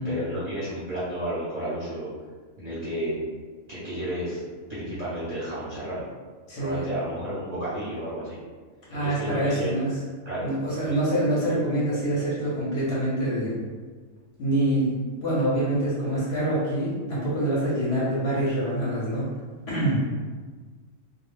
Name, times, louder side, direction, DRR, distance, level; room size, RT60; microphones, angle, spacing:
voice 1, 0.0-2.1 2.6-3.2 3.7-4.4 4.7-6.0 6.6-8.4 8.9-9.7 10.2-10.5 10.8-11.0, right 1 dB, 40° right, -11 dB, 0.6 m, -32 dB
voice 2, 6.5-6.9 8.9-10.0 10.4-13.6 14.4-19.3 19.7-20.0, right 1 dB, 60° left, -7 dB, 0.8 m, -25 dB
2.2 x 2.0 x 3.1 m, 1.5 s
omnidirectional pair, 1.4 m